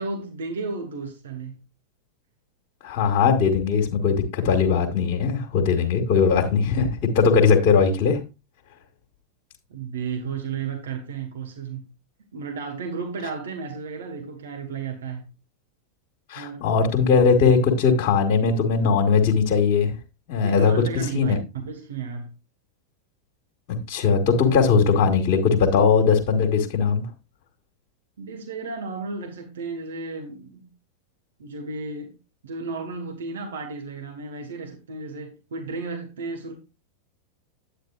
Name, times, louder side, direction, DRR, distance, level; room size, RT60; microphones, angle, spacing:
voice 1, 0.0-1.6 9.7-11.9 12.3-15.3 16.3-16.6 20.4-21.4 21.7-22.3 28.2-30.7 31.4-32.1 32.4-36.5, right 4 dB, 65° right, 1.4 m, -33 dB
voice 2, 2.8-6.9 7.1-8.2 16.3-19.9 20.3-20.7 21.1-21.4 23.7-27.0, left 5 dB, 45° left, 1.6 m, -19 dB
9.3 x 8.8 x 2.4 m
figure-of-eight pair, 90°, 0 cm